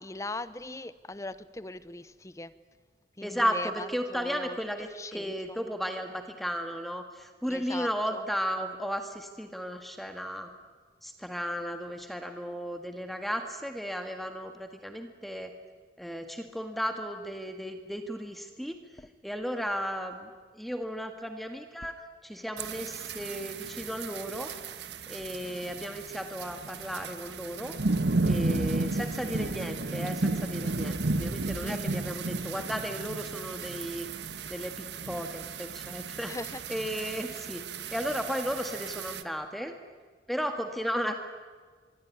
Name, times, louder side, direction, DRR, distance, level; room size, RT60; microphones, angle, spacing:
voice 1, 0.0-2.5 3.2-5.6 7.5-8.2 19.0-19.1 31.6-32.0 36.2-36.6, left 2 dB, 20° left, 15 dB, 0.8 m, -40 dB
voice 2, 3.2-10.5 11.0-15.5 16.0-18.8 19.2-21.9 22.2-24.5 25.1-27.8 28.2-34.1 34.5-36.4 36.7-37.6 37.9-39.7 40.3-41.1, equal, ahead, 6 dB, 1.8 m, -34 dB
sound 1, 22.6-39.2, right 3 dB, 85° right, 1.4 m, -33 dB
25.5 x 23.0 x 9.7 m, 1.5 s
head